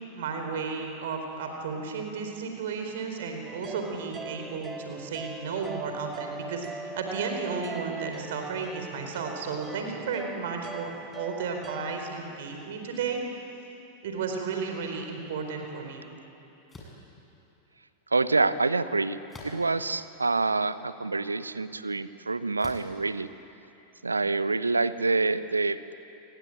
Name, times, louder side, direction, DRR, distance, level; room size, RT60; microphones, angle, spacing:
voice 1, 0.2-6.7 6.9-13.2 14.0-16.0, right 5 dB, 55° right, 4 dB, 4.3 m, -33 dB
sound 1, 3.4-12.0, right 3 dB, 15° right, 1.4 m, -41 dB
sound 2, 16.7-17.0 19.3-19.9 20.6-20.7 22.6-23.0, left 1 dB, 10° left, 7.4 m, -45 dB
voice 2, 18.1-19.2 19.4-23.3 24.0-25.9, right 3 dB, 80° right, 14 dB, 1.0 m, -26 dB
29.0 x 21.5 x 9.1 m, 2.9 s
figure-of-eight pair, 90°, 0 cm